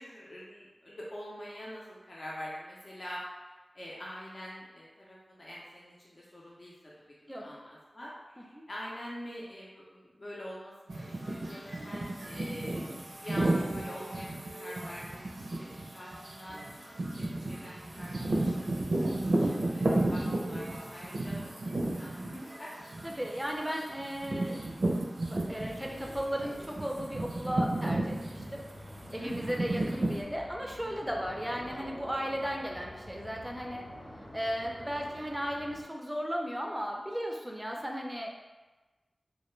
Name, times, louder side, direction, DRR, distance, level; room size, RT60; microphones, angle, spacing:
voice 1, 0.0-6.7 7.2-15.7 15.9-16.6 17.2-22.7 29.2-29.6 34.6-35.1, equal, 55° left, -6 dB, 0.6 m, -45 dB
sound 1, 10.9-26.0 26.4-30.2, right 2 dB, 75° right, 0.4 m, -33 dB
voice 2, 23.0-24.7 25.2-28.6 29.1-33.8 34.3-38.3, equal, 10° right, 0 dB, 0.4 m, -35 dB
sound 2, 25.4-35.8, equal, 90° left, 1.2 m, -48 dB
2.2 x 2.1 x 3.1 m, 1.2 s
wide cardioid pair, 50°, 0 cm